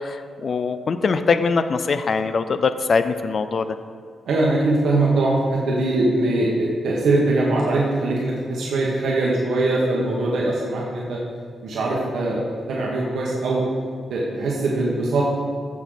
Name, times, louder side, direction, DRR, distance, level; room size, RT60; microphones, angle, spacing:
voice 1, 0.0-3.7, left 4 dB, 45° left, 10 dB, 0.4 m, -22 dB
voice 2, 4.3-11.2 11.6-12.4 12.7-13.6 14.1-15.2, right 2 dB, 80° right, -4 dB, 1.4 m, -21 dB
15.0 x 6.3 x 4.0 m, 2.1 s
wide cardioid pair, 150°, 0 cm